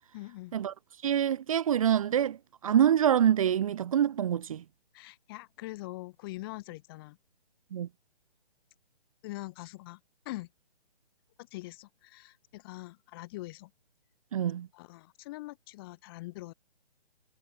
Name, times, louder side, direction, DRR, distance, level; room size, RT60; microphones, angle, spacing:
voice 1, 0.1-0.6 4.9-7.2 9.2-10.0 10.2-10.5 11.5-13.7 14.7-16.5, left 20 dB, 20° left, 4.2 m, -43 dB
voice 2, 1.0-2.4 2.6-4.6 7.7-7.9 14.3-14.7, right 9 dB, 35° right, 1.5 m, -25 dB
hypercardioid pair, 165°, 32 cm